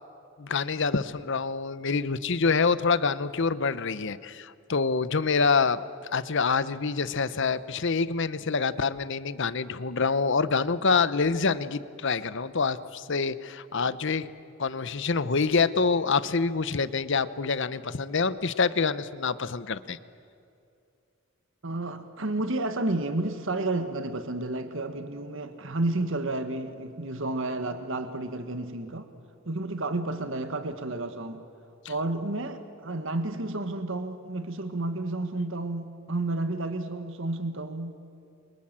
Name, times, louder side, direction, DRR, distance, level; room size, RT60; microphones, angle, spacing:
voice 1, 0.4-5.8 6.1-14.3 14.6-20.0, left 4 dB, 60° left, 15 dB, 0.9 m, -26 dB
voice 2, 21.6-29.1 29.4-31.4 31.9-37.9, right 2 dB, 65° right, 9 dB, 1.6 m, -31 dB
29.5 x 24.5 x 7.6 m, 2.6 s
head